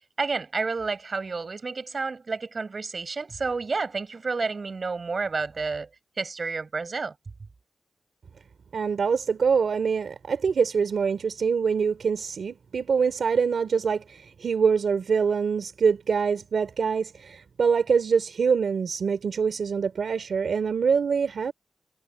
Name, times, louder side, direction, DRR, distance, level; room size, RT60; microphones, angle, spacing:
voice 1, 0.2-5.9 6.2-7.1, right 4 dB, 50° right, 7.6 m, -30 dB
voice 2, 8.7-21.5, right 6 dB, 80° right, 3.0 m, -24 dB
wide cardioid pair, 90°, 0 cm